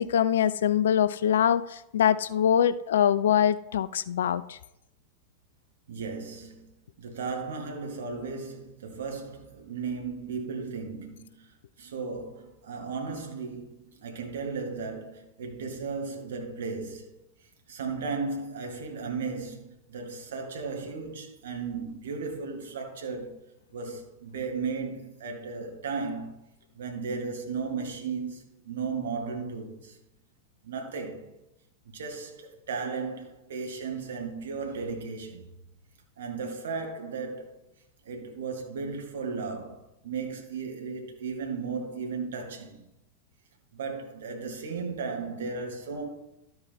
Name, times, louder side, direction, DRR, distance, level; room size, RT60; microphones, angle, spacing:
voice 1, 0.0-4.6, left 9 dB, 60° left, 0.4 m, -24 dB
voice 2, 5.9-6.7 7.0-11.5 11.8-17.1 17.7-23.4 23.7-26.4 26.8-30.0 30.6-31.3 31.9-35.5 36.2-37.6 38.1-42.9 43.7-46.1, right 4 dB, 60° right, 1.8 m, -35 dB
12.0 x 4.7 x 4.2 m
figure-of-eight pair, 90°, 0 cm